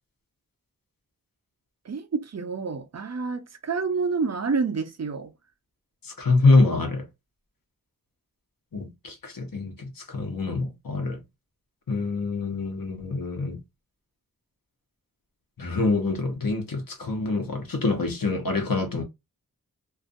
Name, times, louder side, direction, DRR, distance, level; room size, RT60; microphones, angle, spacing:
voice 1, 1.9-5.3, right 4 dB, 50° right, 0.5 m, -28 dB
voice 2, 6.0-7.1 8.7-11.2 11.9-13.6 15.6-19.0, left 3 dB, 75° left, 0.9 m, -25 dB
2.5 x 2.3 x 2.5 m
wide cardioid pair, 55°, 34 cm